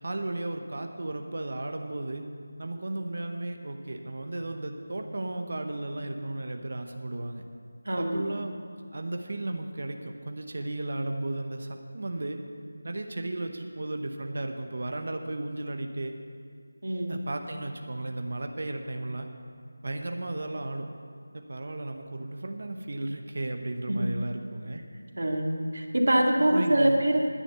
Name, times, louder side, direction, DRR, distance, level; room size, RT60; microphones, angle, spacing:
voice 1, 0.0-2.3 2.6-7.4 8.0-8.6 8.9-12.4 12.8-16.2 17.1-19.3 19.8-20.9 21.3-24.8 26.4-27.0, right 2 dB, 40° right, 5 dB, 0.8 m, -34 dB
voice 2, 7.9-8.3 16.8-17.2 23.9-24.1 25.2-27.2, right 1 dB, 60° right, 1 dB, 2.0 m, -24 dB
10.0 x 10.0 x 7.9 m, 2.1 s
figure-of-eight pair, 180°, 0 cm